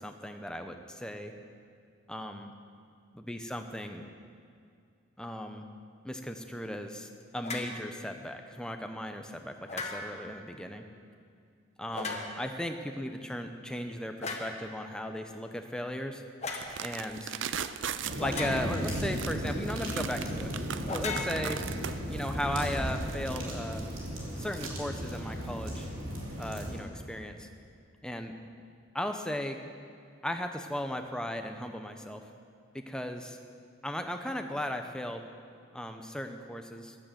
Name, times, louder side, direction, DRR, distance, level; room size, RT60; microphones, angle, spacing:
voice 1, 0.0-1.3 2.1-2.5 3.1-4.1 5.2-5.7 6.0-10.8 11.8-16.2 16.8-17.3 18.2-20.5 20.9-21.6 22.1-23.9 24.4-25.9 26.4-27.5 28.0-28.3 28.9-29.6 30.2-32.2 32.7-33.4 33.8-35.2 35.7-37.0, left 1 dB, 5° left, 5 dB, 0.7 m, -36 dB
sound 1, 7.4-7.8 9.7-10.3 11.9-12.6 14.2-14.6 16.4-16.7 18.2-18.9 20.9-22.0, left 3 dB, 35° left, 1.3 m, -37 dB
sound 2, 16.6-24.7, right 8 dB, 65° right, 0.5 m, -39 dB
sound 3, 18.0-26.8, equal, 80° right, 3.2 m, -35 dB
13.5 x 10.5 x 7.5 m, 2.3 s
head